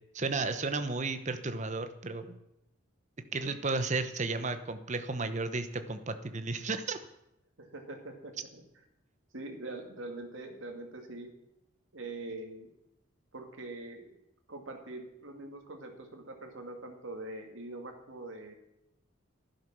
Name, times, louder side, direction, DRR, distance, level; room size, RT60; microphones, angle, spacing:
voice 1, 0.1-2.4 3.3-7.0, right 3 dB, 35° right, 9 dB, 0.9 m, -33 dB
voice 2, 7.6-8.6 9.3-11.3 11.9-12.7 13.3-14.1 14.5-18.6, right 2 dB, 75° right, 3 dB, 2.4 m, -43 dB
11.5 x 11.0 x 6.1 m, 0.84 s
head